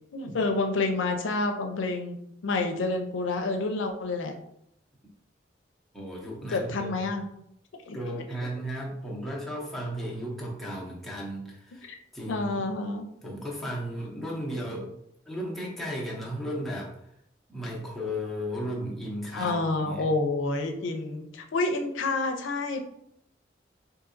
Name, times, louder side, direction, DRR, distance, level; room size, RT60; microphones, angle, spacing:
voice 1, 0.1-2.2 2.4-4.3 6.5-7.3 7.9-8.0 11.8-12.0 12.3-13.0 19.3-22.8, left 3 dB, 90° left, 5 dB, 0.5 m, -28 dB
voice 2, 5.9-6.9 7.9-11.9 12.1-12.7 13.2-14.9 15.2-17.1 17.5-19.6 19.9-20.1, equal, ahead, -5 dB, 0.7 m, -35 dB
3.8 x 2.6 x 2.5 m, 0.75 s
head